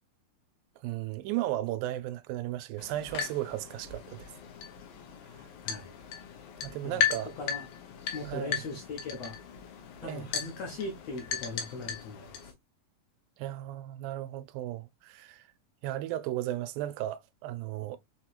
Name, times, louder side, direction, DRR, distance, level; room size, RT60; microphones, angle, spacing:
voice 1, 0.8-4.3 6.6-7.3 8.3-8.6 10.0-10.3 13.4-15.5 15.8-18.0, right 14 dB, 85° right, 2.2 m, -35 dB
sound 1, 2.8-12.5, left 8 dB, 85° left, 2.7 m, -37 dB
voice 2, 5.6-6.0 6.8-7.0 7.4-7.7 8.1-9.4 10.0-12.4, left 3 dB, 70° left, 1.6 m, -39 dB
6.3 x 2.9 x 2.4 m
omnidirectional pair, 4.0 m